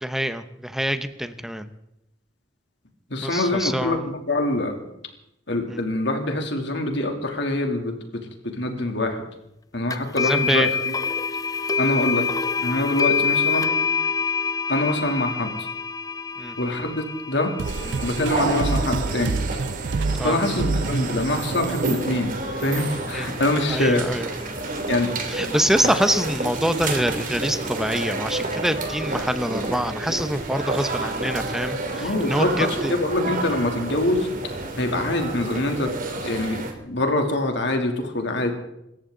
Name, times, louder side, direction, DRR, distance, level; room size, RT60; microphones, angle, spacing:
voice 1, 0.0-1.7 3.2-4.1 5.7-5.8 10.2-10.7 16.4-16.6 20.1-20.4 23.1-23.3 23.7-24.3 25.3-32.9 35.1-35.2, equal, ahead, 10 dB, 0.9 m, -25 dB
voice 2, 3.1-4.8 5.5-7.9 8.4-9.2 9.7-10.9 11.8-13.7 14.7-15.7 16.6-17.5 18.0-19.4 20.2-22.3 22.6-24.1 24.9-25.1 31.9-32.5 32.9-34.3 34.8-38.5, left 2 dB, 70° left, 3 dB, 3.0 m, -25 dB
sound 1, 9.9-18.8, left 5 dB, 20° left, 0.8 m, -26 dB
sound 2, 17.6-36.7, right 2 dB, 50° right, 2.9 m, -30 dB
sound 3, 17.6-22.9, right 4 dB, 75° right, 0.5 m, -28 dB
26.5 x 14.0 x 3.9 m, 0.82 s
head